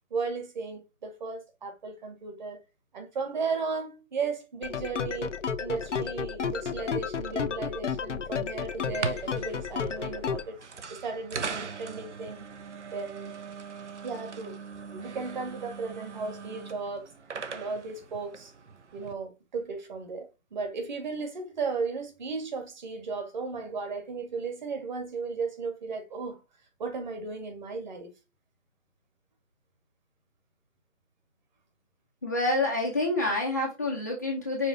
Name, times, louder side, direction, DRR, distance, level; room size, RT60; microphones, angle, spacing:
voice 1, 0.1-2.6 2.9-5.3 5.6-12.5 12.9-13.3 14.0-14.6 14.9-17.0 17.5-18.5 18.9-26.4 26.8-28.1, right 4 dB, 35° right, 1.9 m, -35 dB
sound 1, 4.6-10.4, left 6 dB, 65° left, 0.8 m, -32 dB
sound 2, 8.8-19.1, right 5 dB, 60° right, 1.1 m, -40 dB
voice 2, 32.2-34.7, left 2 dB, 15° left, 0.6 m, -27 dB
5.9 x 4.4 x 4.0 m
figure-of-eight pair, 155°, 39 cm